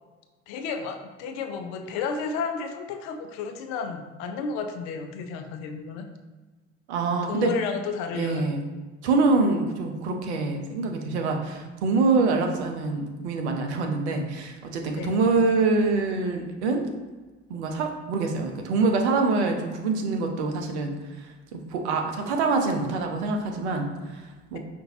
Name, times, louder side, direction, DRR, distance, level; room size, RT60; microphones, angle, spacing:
voice 1, 0.5-6.1 7.3-8.4 15.0-15.2, left 5 dB, 50° left, 6 dB, 0.5 m, -32 dB
voice 2, 6.9-7.5 8.1-8.6 9.0-16.9 17.5-24.6, right 3 dB, 65° right, 3 dB, 0.7 m, -25 dB
5.2 x 2.5 x 2.9 m, 1.2 s
figure-of-eight pair, 60°, 36 cm